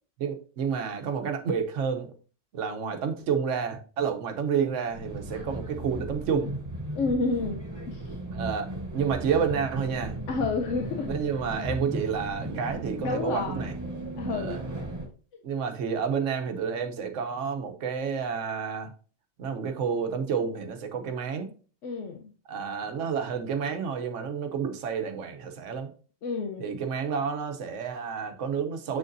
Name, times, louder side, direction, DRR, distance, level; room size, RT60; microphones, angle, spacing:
voice 1, 0.2-2.1 2.5-6.5 8.3-10.2 11.1-13.7 14.3-14.6 15.4-18.9 19.4-21.5 22.5-25.9 26.6-29.0, right 6 dB, 85° right, 1.2 m, -30 dB
sound 1, 4.9-15.1, right 1 dB, 30° right, 2.7 m, -36 dB
voice 2, 6.9-7.6 7.9-8.1 10.3-11.1 13.0-13.7 14.2-14.6 15.3-15.4 21.8-22.3 26.2-26.8, left 4 dB, 90° left, 1.1 m, -30 dB
6.8 x 6.6 x 2.6 m
omnidirectional pair, 1.2 m